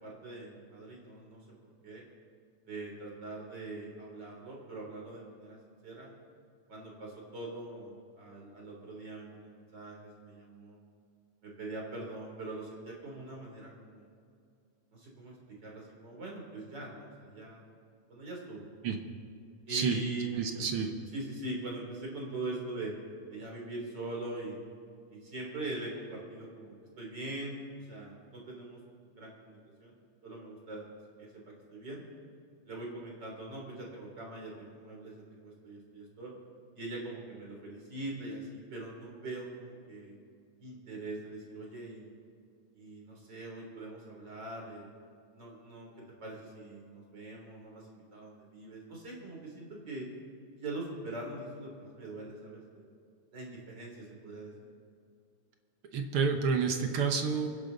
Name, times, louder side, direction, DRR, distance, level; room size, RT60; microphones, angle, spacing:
voice 1, 0.0-1.4 1.8-2.0 2.7-5.6 5.8-6.1 6.7-10.8 11.4-14.1 14.9-17.7 18.1-18.7 19.7-20.3 20.7-20.8 21.1-22.9 23.3-24.6 25.1-27.5 27.9-28.8 29.2-29.9 30.2-30.9 31.2-31.4 31.7-32.0 32.7-36.3 36.7-40.2 40.6-42.1 42.7-44.9 45.3-45.9 46.2-50.1 50.6-52.9 53.3-54.5, right 2 dB, 35° right, -1 dB, 3.7 m, -42 dB
voice 2, 19.7-20.0 20.4-20.9 55.9-57.5, right 5 dB, 65° right, 4 dB, 1.4 m, -29 dB
30.0 x 10.5 x 4.0 m, 2.3 s
omnidirectional pair, 3.6 m